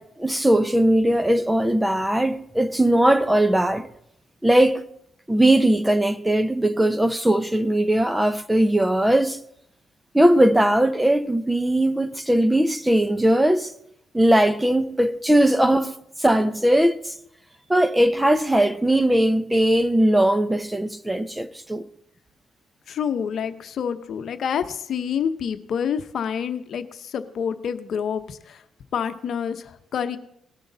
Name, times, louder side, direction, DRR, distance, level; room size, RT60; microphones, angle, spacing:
voice 1, 0.0-3.9 4.4-4.8 5.3-9.4 10.1-13.7 14.1-17.1 17.7-21.8, right 1 dB, 10° right, 0.7 m, -19 dB
voice 2, 22.9-28.6 28.9-29.6 29.9-30.2, left 7 dB, 60° left, 0.9 m, -27 dB
19.0 x 6.5 x 4.0 m
cardioid pair, 90°, 0 cm